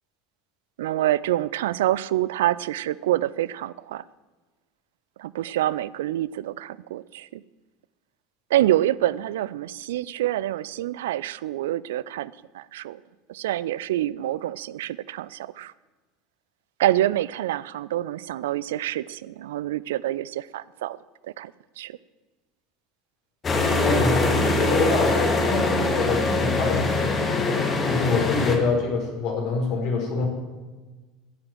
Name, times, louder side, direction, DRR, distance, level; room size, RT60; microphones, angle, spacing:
voice 1, 0.8-4.0 5.2-7.4 8.5-13.0 13.3-15.7 16.8-21.0 21.2-21.5 21.8-22.0, right 13 dB, 65° right, 19 dB, 0.3 m, -26 dB
sound 1, 23.4-28.6, left 2 dB, 25° left, 2.7 m, -23 dB
voice 2, 23.8-27.6 27.9-30.3, left 4 dB, 50° left, 1 dB, 4.5 m, -26 dB
16.0 x 7.8 x 7.5 m, 1.2 s
figure-of-eight pair, 70°, 0 cm